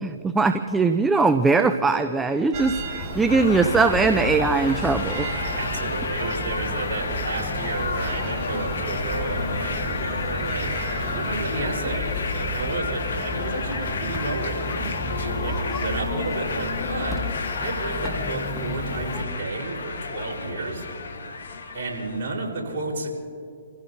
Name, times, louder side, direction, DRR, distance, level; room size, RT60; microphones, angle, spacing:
voice 1, 0.0-5.3, right 4 dB, 10° right, 9 dB, 0.6 m, -21 dB
sound 1, 2.5-12.7, right 3 dB, 35° right, 1.9 m, -35 dB
sound 2, 3.0-19.2, left 1 dB, 15° left, 1.6 m, -34 dB
sound 3, 3.3-22.4, left 4 dB, 75° left, 1.7 m, -31 dB
voice 2, 5.5-10.7 11.1-14.9 15.2-17.2 17.6-20.9 21.7-23.1, right 3 dB, 60° right, -2 dB, 4.4 m, -31 dB
29.5 x 16.0 x 2.8 m, 2.4 s
hypercardioid pair, 125°, 0 cm